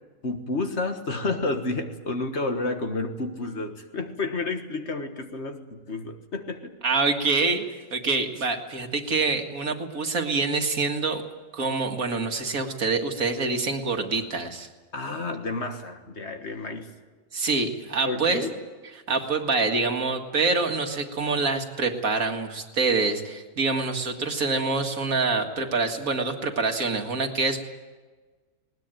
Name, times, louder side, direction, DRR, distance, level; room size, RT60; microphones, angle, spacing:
voice 1, 0.2-6.8 14.9-16.9 18.1-18.6, left 3 dB, 45° left, 6 dB, 1.7 m, -30 dB
voice 2, 6.8-7.6 7.9-11.2 11.5-14.7 17.3-18.4 19.1-27.6, right 3 dB, 65° right, 4 dB, 2.2 m, -26 dB
20.5 x 19.5 x 9.0 m, 1.3 s
omnidirectional pair, 1.6 m